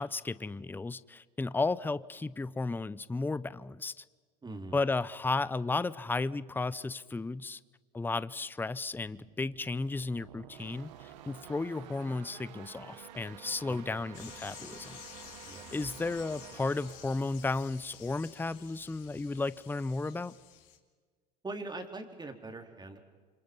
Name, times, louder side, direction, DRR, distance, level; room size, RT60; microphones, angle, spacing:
voice 1, 0.0-4.0 4.7-7.6 7.9-15.0 15.7-20.3, left 3 dB, 10° left, 0.7 m, -34 dB
voice 2, 4.4-4.8 13.7-14.0 15.4-15.7 21.4-23.0, right 2 dB, 20° right, 4.0 m, -42 dB
sound 1, 9.0-18.5, right 11 dB, 80° right, 1.2 m, -52 dB
sound 2, 10.5-16.2, right 8 dB, 65° right, 3.1 m, -59 dB
sound 3, 14.1-20.8, left 11 dB, 65° left, 2.7 m, -52 dB
29.0 x 26.0 x 5.5 m
hypercardioid pair, 80°, 21 cm